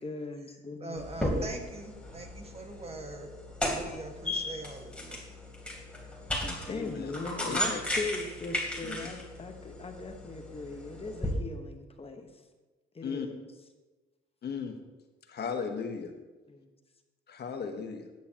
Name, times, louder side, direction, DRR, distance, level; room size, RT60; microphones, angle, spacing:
voice 1, 0.0-1.1 6.4-12.4 12.9-13.4 16.5-16.7, left 3 dB, 30° left, 5 dB, 1.2 m, -39 dB
voice 2, 0.8-3.3 3.6-5.2, right 2 dB, 30° right, 3 dB, 1.6 m, -42 dB
sound 1, 1.0-11.3, left 1 dB, 5° left, 3.1 m, -36 dB
voice 3, 6.7-7.8 8.9-9.1 13.0-13.3 14.4-14.8 15.3-16.1 17.3-18.1, left 6 dB, 55° left, 5 dB, 1.2 m, -36 dB
13.0 x 9.5 x 2.9 m, 1.2 s
cardioid pair, 90°, 20 cm